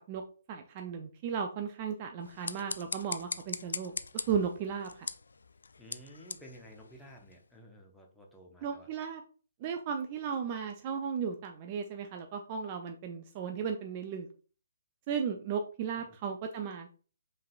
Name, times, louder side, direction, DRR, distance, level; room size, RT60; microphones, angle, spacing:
voice 1, 0.5-5.1 8.6-9.2 9.6-14.3 15.1-17.0, right 7 dB, 30° right, 5 dB, 0.4 m, -35 dB
sound 1, 2.2-7.5, left 4 dB, 65° left, 0.3 m, -41 dB
voice 2, 5.8-8.9 16.0-16.2, equal, 5° left, -1 dB, 0.8 m, -53 dB
5.5 x 3.3 x 2.4 m, 0.39 s
figure-of-eight pair, 130°, 0 cm